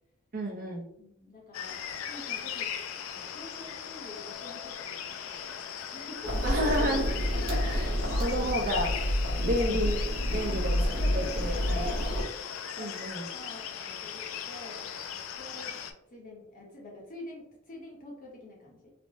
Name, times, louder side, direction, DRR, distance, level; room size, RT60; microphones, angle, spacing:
voice 1, 0.3-0.8 6.4-7.2 7.5-7.9 8.2-9.0 9.4-10.8 11.1-11.8 12.8-13.3, equal, 45° right, 0 dB, 0.6 m, -31 dB
voice 2, 1.0-1.8 2.1-2.7 3.0-6.4 7.3-7.4 10.3-12.2 12.8-14.9 15.4-15.8 16.1-18.9, left 2 dB, 40° left, -2 dB, 0.8 m, -45 dB
sound 1, 1.5-15.9, left 8 dB, 75° left, 0.3 m, -38 dB
sound 2, 6.2-12.2, equal, 60° right, 0.9 m, -29 dB
3.3 x 2.1 x 2.6 m, 0.79 s
head